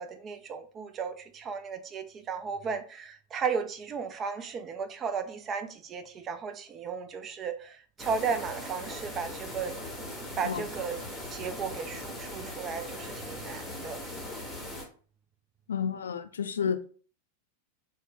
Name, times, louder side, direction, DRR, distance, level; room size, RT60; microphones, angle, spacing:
voice 1, 0.0-9.7 10.4-11.0 11.3-14.0, right 6 dB, 25° right, 0.4 m, -35 dB
sound 1, 8.0-14.9, left 1 dB, ahead, 1.0 m, -40 dB
voice 2, 15.7-16.8, left 7 dB, 65° left, 0.3 m, -31 dB
3.2 x 2.1 x 3.4 m
figure-of-eight pair, 90°, 0 cm